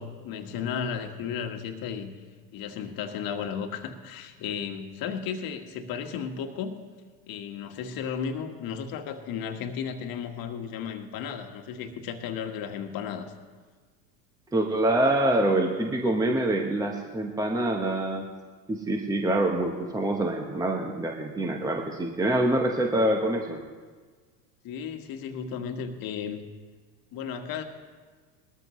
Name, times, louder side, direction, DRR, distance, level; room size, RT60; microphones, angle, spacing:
voice 1, 0.0-2.1 2.5-6.8 7.3-13.3 24.6-26.4 27.1-27.6, left 7 dB, 45° left, 5 dB, 1.6 m, -34 dB
voice 2, 14.5-18.3 18.7-23.7, right 1 dB, 5° right, 2 dB, 1.0 m, -25 dB
20.5 x 13.5 x 3.1 m, 1.5 s
hypercardioid pair, 95°, 50 cm